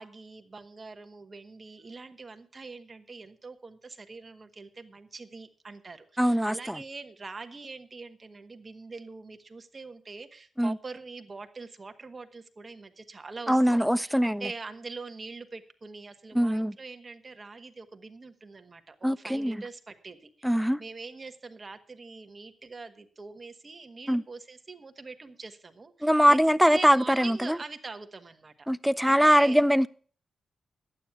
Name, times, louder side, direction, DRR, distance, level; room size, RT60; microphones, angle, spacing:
voice 1, 0.0-28.7 29.1-29.6, right 4 dB, 35° right, 1.3 m, -43 dB
voice 2, 6.2-6.8 10.6-10.8 13.5-14.4 16.3-16.7 19.0-19.6 20.4-20.8 24.1-24.2 26.0-27.6 28.7-29.9, equal, ahead, 0.5 m, -22 dB
11.5 x 9.0 x 5.8 m
cardioid pair, 100°, 0 cm